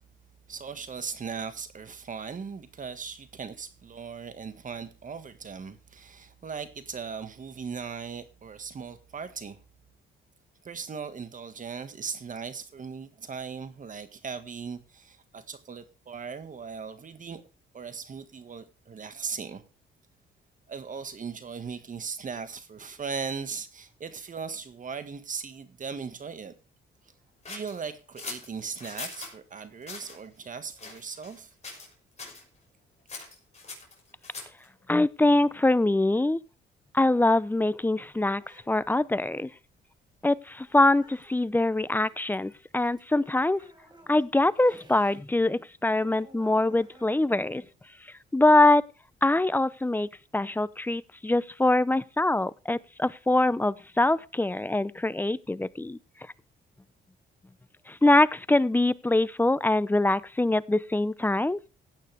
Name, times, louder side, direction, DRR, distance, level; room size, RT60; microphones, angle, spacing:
voice 1, 0.5-9.6 10.6-17.4 17.7-19.6 20.7-26.5 27.5-31.5, right 5 dB, 40° right, 1.8 m, -38 dB
sound 1, 27.4-29.3 29.8-30.2 30.8-31.4 31.6-31.9 32.2-32.4 33.1-34.7, left 4 dB, 35° left, 6.0 m, -41 dB
voice 2, 34.9-36.4 36.9-38.4 38.7-39.5 40.2-43.6 44.1-47.6 48.3-48.8 49.2-56.0 57.9-61.7, left 2 dB, 10° left, 0.6 m, -24 dB
sound 2, 37.7-45.2 45.5-49.3, right 1 dB, 20° right, 5.2 m, -57 dB
16.5 x 9.1 x 3.5 m
cardioid pair, 90°, 20 cm